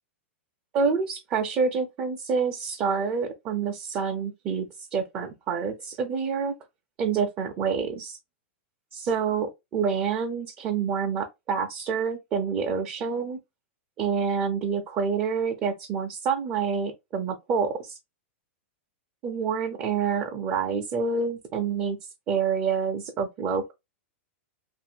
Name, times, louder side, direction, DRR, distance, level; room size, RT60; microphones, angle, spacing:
voice 1, 0.7-4.7 4.9-6.5 7.0-8.2 8.9-13.4 14.0-18.0 19.2-22.0 22.3-23.7, right 5 dB, 30° right, 0.5 m, -27 dB
2.6 x 2.5 x 2.8 m
supercardioid pair, 150°, 7 cm